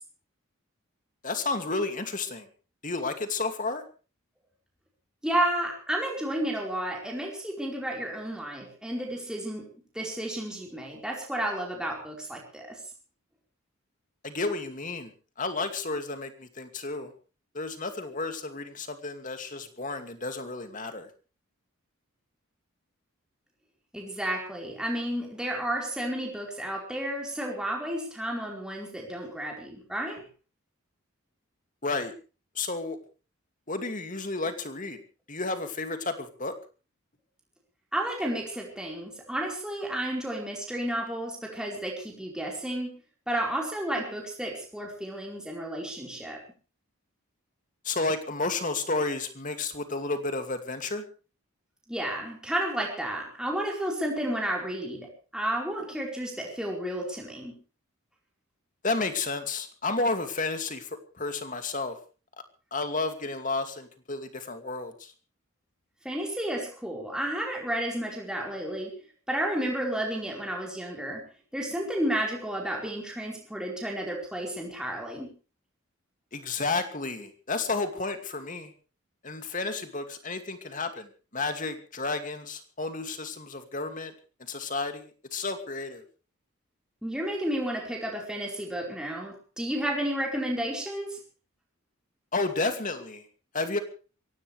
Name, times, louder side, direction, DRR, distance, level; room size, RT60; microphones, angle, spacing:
voice 1, 1.2-2.5 2.8-3.8 14.2-15.1 15.4-17.1 17.5-21.1 31.8-32.1 32.6-33.0 33.7-35.0 35.3-36.5 47.8-51.0 58.8-60.9 61.1-62.0 62.7-65.1 76.3-78.7 79.2-84.1 84.5-86.0 92.3-93.2 93.5-93.8, left 3 dB, 35° left, 7 dB, 2.5 m, -31 dB
voice 2, 5.2-9.7 9.9-12.8 23.9-30.2 37.9-43.0 43.3-46.4 51.9-55.1 55.3-57.5 66.0-68.9 69.3-71.2 71.5-75.3 87.0-91.2, right 1 dB, 5° right, -2 dB, 4.7 m, -32 dB
24.0 x 17.5 x 3.4 m, 0.35 s
head